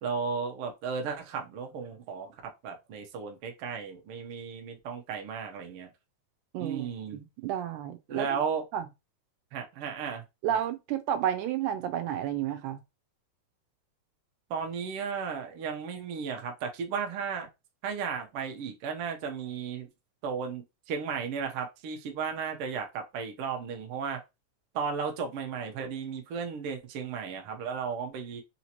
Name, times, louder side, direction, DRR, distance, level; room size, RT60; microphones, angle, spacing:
voice 1, 0.0-5.9 6.6-7.2 8.1-8.6 9.5-10.2 10.5-10.6 14.5-17.5 17.8-19.9 20.2-24.2 24.7-28.4, right 6 dB, 65° right, 1.4 m, -34 dB
voice 2, 6.5-8.4 8.7-8.9 10.4-12.8, right 10 dB, 85° right, 2.1 m, -31 dB
4.9 x 2.9 x 2.9 m
omnidirectional pair, 3.6 m